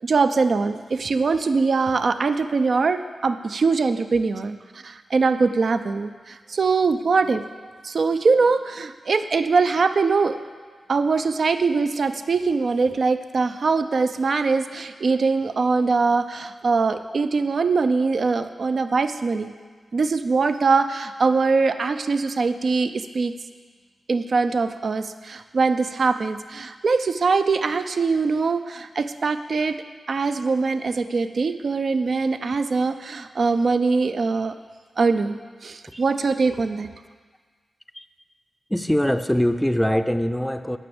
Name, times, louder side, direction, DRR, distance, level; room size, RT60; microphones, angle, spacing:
voice 1, 0.0-4.6 4.8-7.4 7.8-10.4 10.9-19.5 19.9-23.3 24.1-29.8 30.1-34.5 35.0-36.9, right 4 dB, 65° right, 9 dB, 0.5 m, -22 dB
voice 2, 38.7-40.8, equal, 5° left, 10 dB, 0.5 m, -22 dB
9.1 x 6.1 x 7.0 m, 1.5 s
cardioid pair, 45°, 0 cm